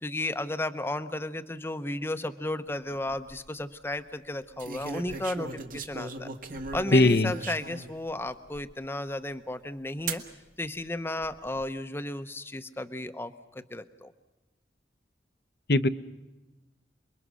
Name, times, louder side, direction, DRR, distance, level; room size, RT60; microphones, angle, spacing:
voice 1, 0.0-6.3 6.7-10.2 10.6-14.1, left 1 dB, 15° left, 10 dB, 0.8 m, -34 dB
sound 1, 2.9-3.3 4.6-7.9 8.5-8.6 10.1-10.3 11.2-11.7, right 3 dB, 50° right, 1.7 m, -38 dB
voice 2, 6.9-7.3 15.7-15.9, left 2 dB, 60° left, 11 dB, 0.8 m, -19 dB
29.0 x 22.0 x 6.3 m, 1.1 s
head